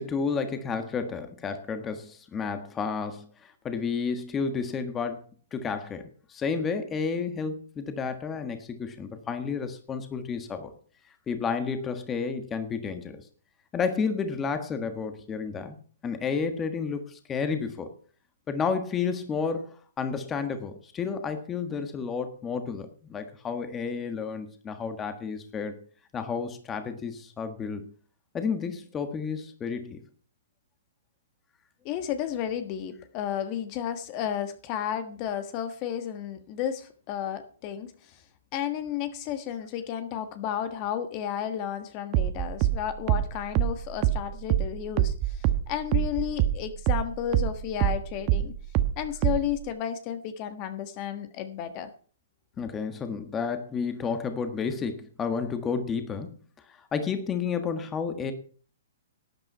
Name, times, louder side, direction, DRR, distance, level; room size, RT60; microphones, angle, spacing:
voice 1, 0.0-10.7 11.3-13.3 13.7-15.8 16.0-17.9 18.5-25.8 26.1-27.9 28.3-30.0 52.6-56.3 56.7-58.3, left 5 dB, 15° left, 8 dB, 1.4 m, -31 dB
voice 2, 31.8-38.2 38.5-48.5 49.0-51.9, left 10 dB, 35° left, 9 dB, 1.4 m, -32 dB
sound 1, 42.1-47.1 47.3-49.6, right 12 dB, 35° right, 1.0 m, -25 dB
12.5 x 9.0 x 5.5 m, 0.42 s
hypercardioid pair, 140°, 0 cm